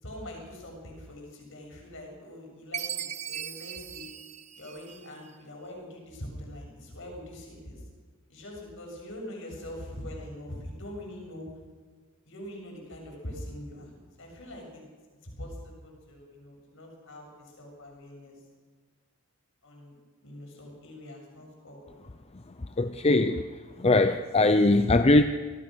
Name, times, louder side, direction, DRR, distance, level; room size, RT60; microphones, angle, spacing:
voice 1, 0.0-4.1 4.6-7.8 8.3-11.5 12.3-13.9 14.2-14.8 15.4-18.4 19.6-19.9 20.2-21.9, left 1 dB, 60° left, 0 dB, 7.2 m, -43 dB
Chime, 2.7-5.3, right 9 dB, 30° right, 0.7 m, -38 dB
voice 2, 22.8-23.5 23.8-25.2, left 2 dB, 25° left, 9 dB, 0.6 m, -21 dB
26.0 x 18.5 x 6.3 m, 1.5 s
head